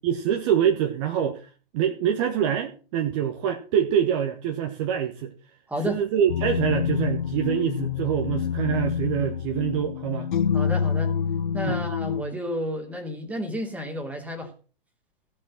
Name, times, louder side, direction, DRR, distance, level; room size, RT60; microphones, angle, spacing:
voice 1, 0.0-5.3 5.8-10.3 11.6-11.8, right 9 dB, 30° right, 5 dB, 1.2 m, -25 dB
sound 1, 6.3-12.2, left 7 dB, 55° left, 0.6 m, -27 dB
voice 2, 10.5-11.1 11.5-14.5, equal, 5° right, 2 dB, 2.7 m, -31 dB
15.5 x 5.4 x 7.3 m, 0.38 s
figure-of-eight pair, 115°, 29 cm